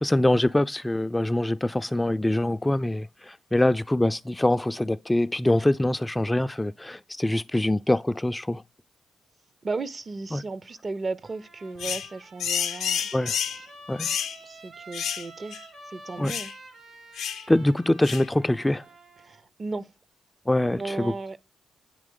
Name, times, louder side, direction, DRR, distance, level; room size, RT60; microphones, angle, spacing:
voice 1, 0.0-8.6 10.3-10.4 13.1-13.4 13.9-14.1 16.2-16.3 17.5-18.8 20.5-21.1, left 1 dB, 15° left, 0.3 m, -24 dB
voice 2, 9.6-13.0 14.5-15.6 15.9-16.5 19.2-19.9 20.8-21.4, right 3 dB, 45° right, 0.6 m, -35 dB
Trumpet, 11.2-19.4, right 2 dB, 80° right, 3.1 m, -48 dB
sound 1, 11.8-12.1 12.4-13.6 14.0-14.4 14.9-15.3 15.5-15.6 16.3-16.5 17.2-17.4 18.0-18.3, left 8 dB, 80° left, 0.5 m, -29 dB
8.9 x 3.0 x 3.7 m
supercardioid pair, 45°, 0 cm